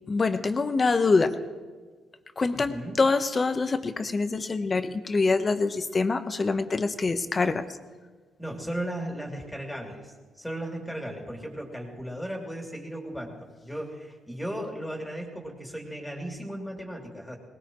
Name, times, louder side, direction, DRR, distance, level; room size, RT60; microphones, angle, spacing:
voice 1, 0.1-1.4 2.4-7.6, left 3 dB, 30° left, 9 dB, 1.0 m, -25 dB
voice 2, 2.5-3.0 8.4-17.4, right 1 dB, 5° left, 0 dB, 3.0 m, -36 dB
22.5 x 19.0 x 3.1 m, 1.4 s
cardioid pair, 90°, 0 cm